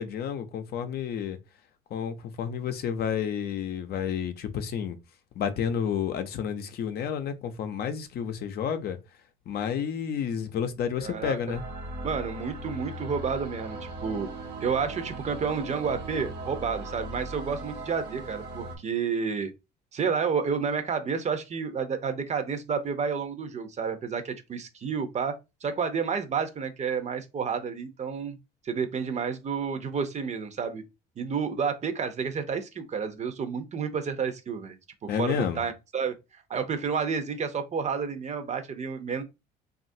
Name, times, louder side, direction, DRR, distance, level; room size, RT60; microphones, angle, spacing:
voice 1, 0.0-1.4 1.9-5.0 5.4-9.0 9.5-11.6 35.1-35.6, left 8 dB, 60° left, 0.6 m, -30 dB
voice 2, 11.0-11.6 12.0-14.3 14.6-19.5 19.9-28.4 28.6-30.8 31.2-34.8 35.0-36.2 36.5-39.2, right 6 dB, 40° right, 0.7 m, -30 dB
sound 1, 11.5-18.8, right 2 dB, 70° right, 1.2 m, -38 dB
2.9 x 2.4 x 2.6 m
supercardioid pair, 80°, 19 cm